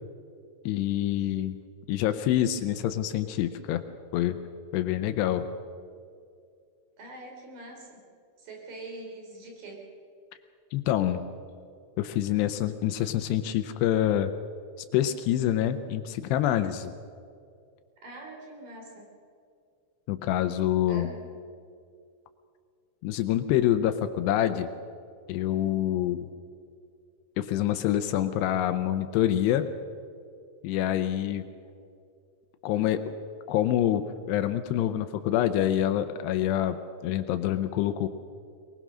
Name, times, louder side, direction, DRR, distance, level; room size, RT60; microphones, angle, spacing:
voice 1, 0.7-1.6 1.9-3.8 4.1-4.4 4.7-5.5 10.7-11.2 12.0-14.3 14.9-16.9 20.1-21.1 23.0-24.7 25.3-26.3 27.4-29.7 30.6-31.5 32.6-33.0 33.5-38.1, left 12 dB, 85° left, 9 dB, 2.9 m, -26 dB
voice 2, 7.0-8.0 8.4-9.9 11.1-11.3 18.0-19.1 20.9-21.2, right 2 dB, 55° right, 1 dB, 5.0 m, -44 dB
23.0 x 19.5 x 6.2 m, 2.3 s
omnidirectional pair, 4.8 m